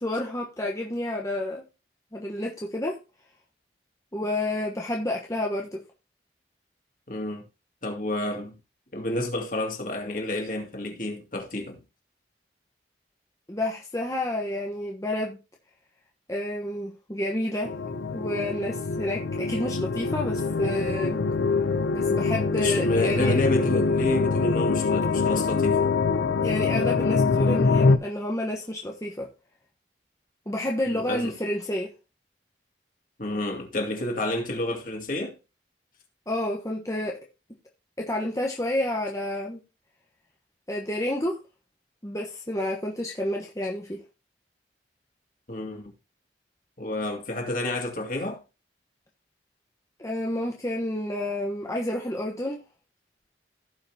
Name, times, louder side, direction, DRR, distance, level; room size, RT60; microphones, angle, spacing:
voice 1, 0.0-1.6 2.1-3.0 4.1-5.8 13.5-15.4 16.3-17.7 18.1-21.2 21.9-23.4 26.4-29.3 30.5-31.9 36.3-37.2 38.0-39.6 40.7-41.4 42.0-44.0 50.0-52.6, left 1 dB, 15° left, 1.1 m, -30 dB
voice 2, 7.1-7.4 7.8-8.5 8.9-11.8 22.6-25.9 30.9-31.3 33.2-35.4 45.5-45.9 46.8-48.4, left 1 dB, 45° left, 2.4 m, -29 dB
sound 1, 17.7-28.0, left 4 dB, 80° left, 0.6 m, -24 dB
16.0 x 5.8 x 2.8 m
head